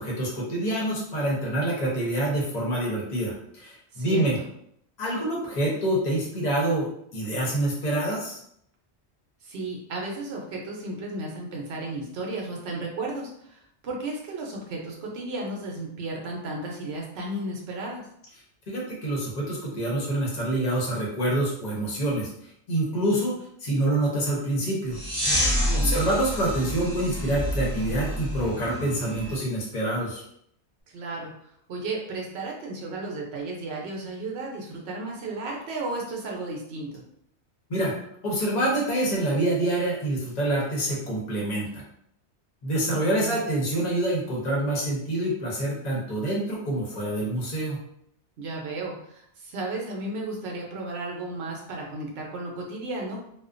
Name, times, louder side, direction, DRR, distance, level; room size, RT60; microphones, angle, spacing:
voice 1, 0.0-4.4 5.0-8.4 18.7-22.3 22.7-23.4 23.6-25.0 25.7-30.2 37.7-37.9 38.2-41.8 42.6-47.8, right 1 dB, 40° left, -4 dB, 0.8 m, -26 dB
voice 2, 3.9-4.4 9.4-18.0 25.6-26.0 30.9-37.0 42.9-43.4 48.4-53.2, right 2 dB, 70° right, -1 dB, 0.9 m, -34 dB
sound 1, 24.9-29.4, equal, 15° right, 0.5 m, -28 dB
2.4 x 2.1 x 2.4 m, 0.71 s
omnidirectional pair, 1.2 m